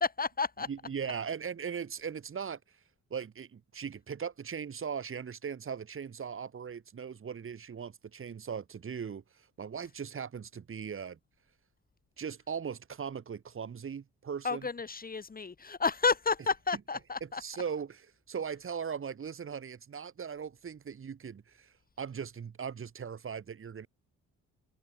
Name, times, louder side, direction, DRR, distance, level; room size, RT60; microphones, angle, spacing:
voice 1, 0.0-0.7 14.4-17.4, left 4 dB, 30° left, 2.4 m, -31 dB
voice 2, 0.7-2.6 3.1-11.2 12.2-14.6 17.4-17.9 18.3-23.9, right 7 dB, 45° right, 2.8 m, -39 dB
cardioid pair, 90°, 30 cm